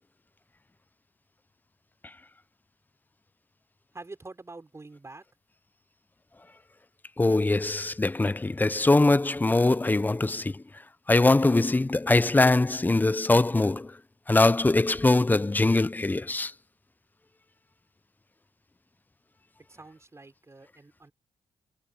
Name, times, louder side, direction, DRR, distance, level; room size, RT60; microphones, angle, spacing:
voice 1, 3.9-5.2 19.7-21.1, right 3 dB, 25° right, 4.8 m, -46 dB
voice 2, 7.2-10.6 11.1-14.0 14.3-16.5, left 2 dB, 15° left, 0.8 m, -22 dB
cardioid pair, 70°, 11 cm